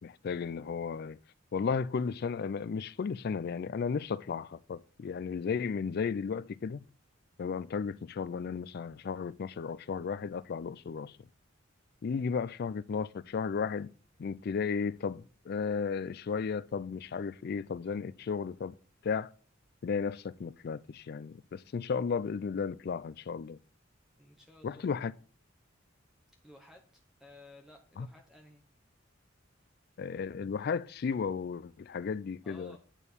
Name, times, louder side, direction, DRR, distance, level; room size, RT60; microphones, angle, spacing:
voice 1, 0.0-1.2 1.5-6.8 7.4-11.2 12.0-13.9 14.2-18.7 19.0-19.3 19.8-23.6 24.6-25.1 28.0-28.1 30.0-32.8, left 5 dB, 50° left, 0.4 m, -34 dB
voice 2, 24.2-24.9 26.4-26.8 27.2-28.6 32.4-32.8, left 1 dB, 5° right, 0.9 m, -55 dB
8.9 x 4.4 x 6.6 m
head